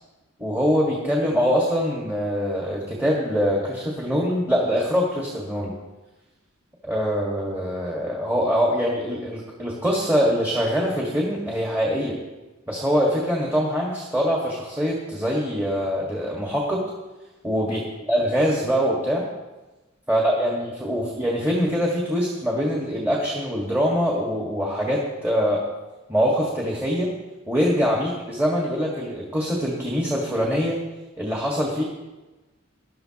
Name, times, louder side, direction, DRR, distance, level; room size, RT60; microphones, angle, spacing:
voice 1, 0.4-5.7 6.8-12.2 12.7-16.8 17.4-17.8 18.1-19.2 20.1-25.6 26.1-27.1 27.5-30.8 31.2-31.8, equal, 10° right, -3 dB, 1.7 m, -23 dB
19.0 x 11.5 x 3.0 m, 1.1 s
head